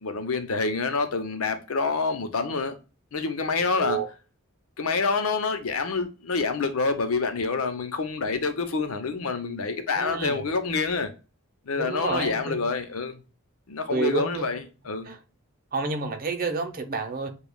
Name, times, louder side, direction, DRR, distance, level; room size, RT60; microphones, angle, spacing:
voice 1, 0.0-2.8 3.1-4.0 4.8-11.1 11.7-13.2 13.7-15.1, left 4 dB, 80° left, 0.7 m, -27 dB
voice 2, 3.7-4.1 9.9-10.4 11.8-12.6 13.9-14.5 15.1-15.2 15.7-17.3, right 4 dB, 45° right, 0.7 m, -29 dB
7.0 x 2.3 x 2.2 m
head